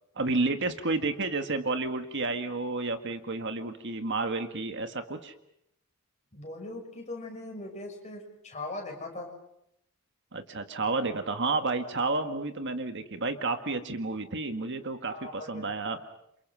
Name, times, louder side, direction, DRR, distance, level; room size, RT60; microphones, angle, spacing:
voice 1, 0.2-5.3 10.3-16.0, right 3 dB, 55° right, 7 dB, 1.7 m, -31 dB
voice 2, 6.3-9.3 15.1-15.7, left 2 dB, 30° left, 2 dB, 6.6 m, -40 dB
29.0 x 27.5 x 6.2 m, 0.78 s
head